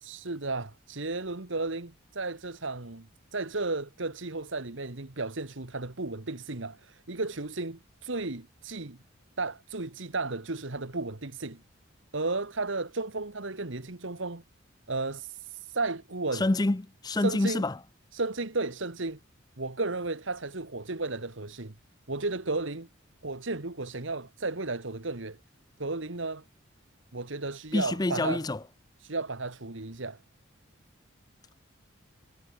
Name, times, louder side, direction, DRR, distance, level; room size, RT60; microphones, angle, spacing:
voice 1, 0.0-9.0 9.4-11.6 12.1-14.4 14.9-16.4 17.2-17.6 18.1-19.2 19.6-21.7 22.1-22.9 23.2-25.4 25.8-26.4 27.1-28.4 29.0-30.2, right 3 dB, 65° right, 1.6 m, -34 dB
voice 2, 16.3-17.8 27.7-28.6, left 2 dB, 20° left, 0.5 m, -27 dB
head